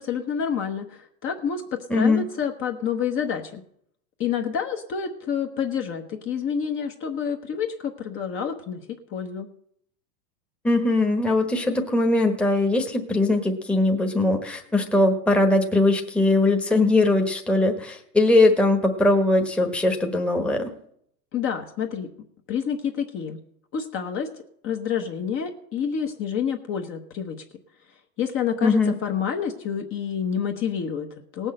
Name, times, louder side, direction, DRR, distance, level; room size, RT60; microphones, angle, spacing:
voice 1, 0.0-1.6 1.9-3.6 4.2-9.5 21.3-22.1 22.5-23.4 23.7-24.3 24.6-27.4 28.2-31.5, left 7 dB, 25° left, 3 dB, 1.1 m, -28 dB
voice 2, 1.9-2.2 10.6-20.6 28.6-28.9, left 2 dB, ahead, 2 dB, 1.2 m, -20 dB
18.0 x 6.4 x 7.6 m, 0.69 s
hypercardioid pair, 140°, 49 cm